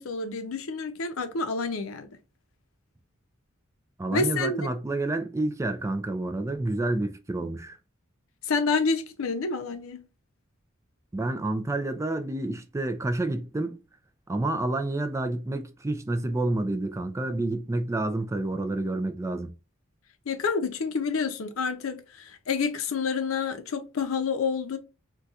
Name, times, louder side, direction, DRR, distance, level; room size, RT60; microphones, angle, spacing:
voice 1, 0.0-2.1 4.1-4.6 8.4-10.0 20.3-24.8, left 4 dB, 75° left, 0.6 m, -28 dB
voice 2, 4.0-7.8 11.1-13.8 14.3-19.5, right 2 dB, 15° right, 0.3 m, -29 dB
4.0 x 2.3 x 2.4 m
head